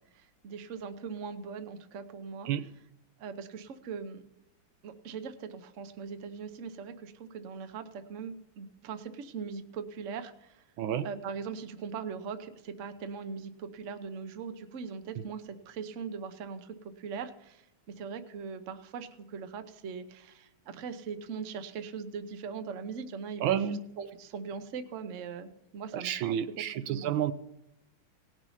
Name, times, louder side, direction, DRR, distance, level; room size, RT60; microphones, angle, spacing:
voice 1, 0.1-2.5 3.2-4.2 4.8-10.6 11.0-17.6 17.9-26.4 26.9-27.1, right 6 dB, 55° right, 9 dB, 0.9 m, -40 dB
voice 2, 23.4-23.8 25.9-27.3, right 10 dB, 75° right, 12 dB, 1.3 m, -30 dB
18.0 x 6.1 x 5.6 m, 0.86 s
omnidirectional pair, 2.3 m